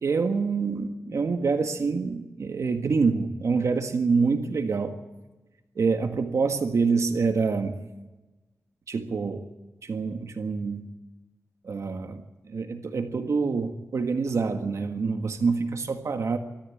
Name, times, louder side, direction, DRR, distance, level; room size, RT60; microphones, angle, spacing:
voice 1, 0.0-5.0 5.8-7.8 8.9-9.5 9.8-10.9 11.6-16.4, right 4 dB, 70° right, 6 dB, 1.7 m, -26 dB
24.0 x 14.0 x 8.6 m, 1.1 s
wide cardioid pair, 135°, 5 cm